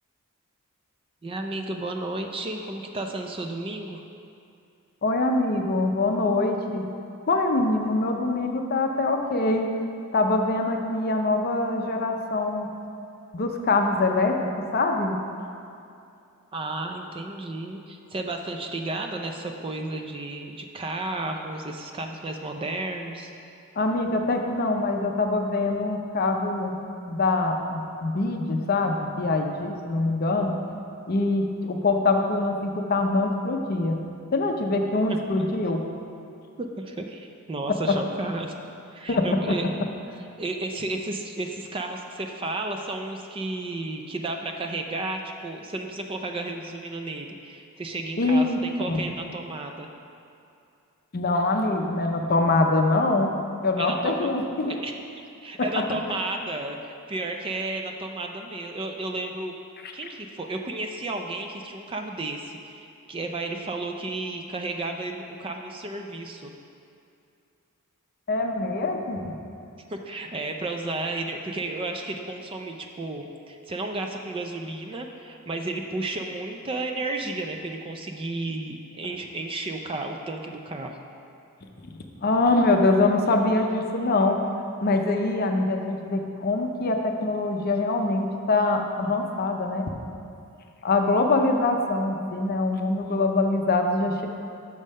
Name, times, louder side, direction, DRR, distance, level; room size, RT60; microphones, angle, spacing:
voice 1, 1.2-4.0 16.5-23.3 35.4-35.5 36.6-38.5 38.9-39.7 40.4-49.9 53.8-54.3 54.7-55.0 55.4-56.8 57.1-59.5 59.9-66.5 69.9-81.0, right 2 dB, 25° right, 4 dB, 0.4 m, -32 dB
voice 2, 5.0-6.8 7.3-9.7 10.1-12.7 13.3-14.5 14.7-15.2 23.8-26.8 27.1-30.6 31.1-34.0 34.3-35.8 39.1-39.2 48.2-48.6 48.8-49.0 51.1-53.3 53.6-54.8 68.3-69.3 82.2-84.4 84.8-89.8 90.8-94.3, left 2 dB, 45° left, 3 dB, 0.6 m, -24 dB
6.3 x 5.4 x 5.4 m, 2.6 s
head